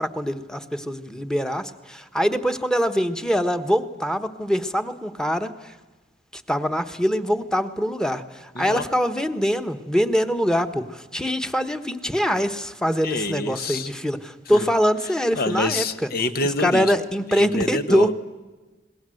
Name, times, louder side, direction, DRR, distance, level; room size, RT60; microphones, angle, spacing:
voice 1, 0.0-5.5 6.3-8.2 8.6-15.9 16.6-18.1, equal, 5° left, 10 dB, 1.3 m, -23 dB
voice 2, 8.5-8.9 13.0-13.9 14.5-14.7 15.3-16.9 17.3-18.1, left 2 dB, 55° left, 11 dB, 1.2 m, -27 dB
28.5 x 20.5 x 7.8 m, 1.2 s
head